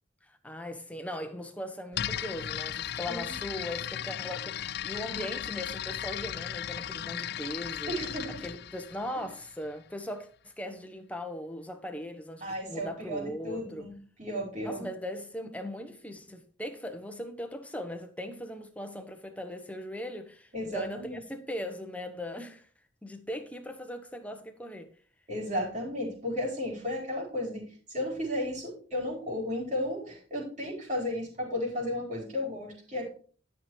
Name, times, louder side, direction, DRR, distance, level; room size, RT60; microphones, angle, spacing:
voice 1, 0.2-7.9 8.4-13.9 14.6-22.7 23.0-24.9, left 1 dB, 10° left, 1.1 m, -39 dB
sound 1, 1.9-9.7, left 10 dB, 60° left, 0.4 m, -36 dB
voice 2, 7.9-8.4 12.4-14.8 20.5-21.2 25.3-33.1, left 1 dB, 40° right, 5.1 m, -34 dB
12.0 x 6.1 x 4.8 m
head